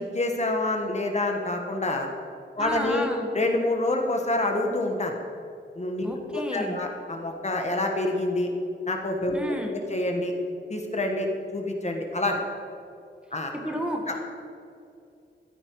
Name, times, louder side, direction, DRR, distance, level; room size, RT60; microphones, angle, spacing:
voice 1, 0.0-2.1 2.6-3.1 3.3-5.1 5.7-8.5 8.9-10.3 10.7-12.4 13.3-13.5 14.1-14.2, left 2 dB, 35° left, 2 dB, 1.5 m, -27 dB
voice 2, 2.6-3.3 6.0-6.8 9.3-9.8 13.5-14.0, equal, 5° right, 1 dB, 1.7 m, -31 dB
14.5 x 13.0 x 4.8 m, 2.6 s
wide cardioid pair, 145°, 19 cm